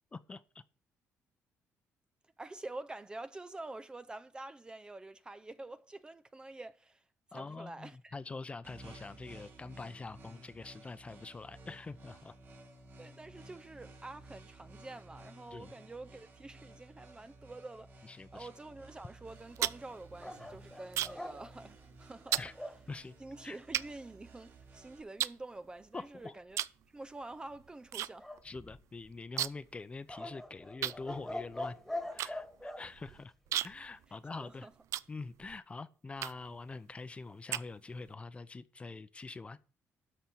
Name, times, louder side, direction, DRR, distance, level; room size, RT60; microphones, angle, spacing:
voice 1, 0.1-0.6 7.3-12.3 15.5-15.8 18.0-18.5 22.4-22.5 22.9-23.1 23.4-23.6 25.9-26.3 28.4-31.8 32.1-33.3 33.6-34.7 35.1-39.6, left 3 dB, 25° left, 0.7 m, -45 dB
voice 2, 2.4-7.0 7.3-8.1 13.0-22.4 23.2-26.6 26.9-28.3 34.1-34.7, right 2 dB, 15° right, 0.5 m, -47 dB
sound 1, 8.6-25.0, right 2 dB, 45° right, 2.9 m, -55 dB
sound 2, 19.3-21.4 21.6-21.9 22.3-22.5 23.2-23.3 23.7-24.7 25.2-26.1 26.5-26.8 27.1-28.1 28.4-28.5 28.7-29.8 30.0-30.1 30.8-35.6 36.2-36.6 37.1-38.1, right 12 dB, 75° right, 0.4 m, -37 dB
sound 3, 20.2-22.8 28.2-29.1 30.1-32.8, left 1 dB, ahead, 1.6 m, -43 dB
13.0 x 4.4 x 7.7 m
cardioid pair, 110°, 5 cm